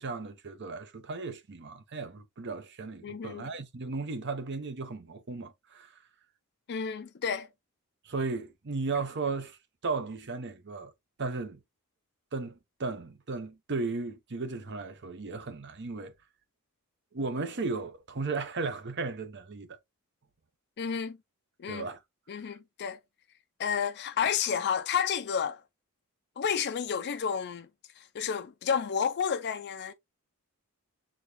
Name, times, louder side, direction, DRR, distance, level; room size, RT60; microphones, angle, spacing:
voice 1, 0.0-5.9 8.0-9.6 9.8-10.9 11.2-11.6 12.3-16.1 17.1-19.8 21.7-22.0, right 3 dB, 50° right, 0.8 m, -35 dB
voice 2, 3.0-3.5 6.7-7.5 20.8-21.2 21.6-21.9 22.3-23.0 23.6-25.6 26.4-27.7 28.0-29.9, left 7 dB, 50° left, 0.4 m, -31 dB
6.2 x 2.3 x 3.2 m
head